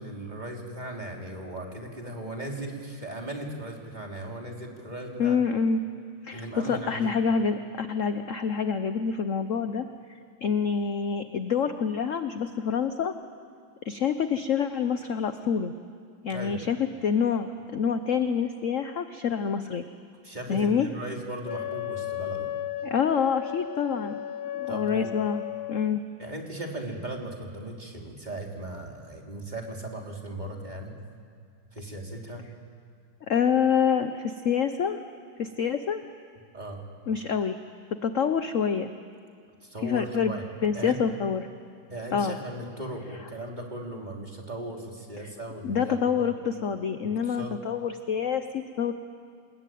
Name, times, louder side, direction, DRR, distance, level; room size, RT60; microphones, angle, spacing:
voice 1, 0.0-5.4 6.3-7.1 16.3-16.6 20.2-22.5 24.7-25.1 26.2-31.0 31.7-32.4 36.5-36.8 39.6-40.4 40.7-41.0 41.9-46.3 47.0-47.5, right 1 dB, 20° right, 0 dB, 3.4 m, -37 dB
voice 2, 5.2-5.8 6.2-9.9 10.4-13.1 13.8-15.7 16.2-19.8 20.5-20.9 22.8-24.2 24.5-25.4 25.7-26.0 33.3-35.0 35.4-36.0 37.1-37.6 38.0-38.9 39.8-40.4 40.6-41.5 42.1-42.4 45.6-48.9, left 7 dB, 55° left, 9 dB, 0.9 m, -27 dB
Wind instrument woodwind instrument, 21.4-25.9, left 12 dB, 75° left, 1.7 m, -35 dB
28.0 x 21.0 x 9.2 m, 2.2 s
omnidirectional pair, 2.3 m